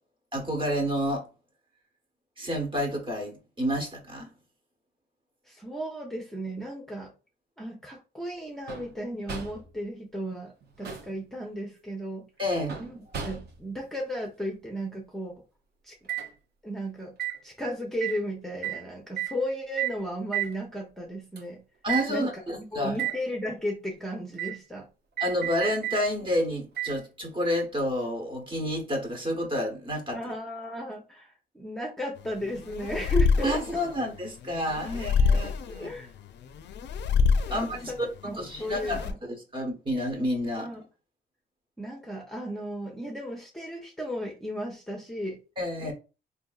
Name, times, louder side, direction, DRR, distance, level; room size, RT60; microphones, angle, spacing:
voice 1, 0.3-1.3 2.4-4.3 12.4-12.8 21.8-23.0 25.2-30.2 33.4-35.9 37.5-37.9 38.4-40.7 45.6-45.9, equal, 25° right, 1.2 m, -29 dB
voice 2, 5.5-7.1 7.6-10.5 10.8-12.3 12.8-13.0 13.2-15.4 15.8-16.0 16.6-17.2 17.4-21.6 22.1-24.9 30.1-33.6 35.3-36.1 37.5-38.0 38.2-39.2 40.6-40.8 41.8-45.4 45.8-45.9, equal, ahead, 0.7 m, -35 dB
sound 1, 8.7-9.0 9.3-9.7 10.6-11.2 12.7-13.7 16.1-16.3 17.2-17.4 18.0-18.2 18.6-18.8 19.2-19.4 19.8-20.0 20.3-20.6 21.4-21.5 21.9-22.1 22.9-23.2 24.4-24.6 25.2-26.0 26.8-27.0 27.8-27.9, right 12 dB, 55° right, 0.8 m, -32 dB
sound 2, 32.2-39.1, left 5 dB, 60° left, 0.4 m, -27 dB
3.5 x 2.7 x 2.4 m
cardioid pair, 90°, 20 cm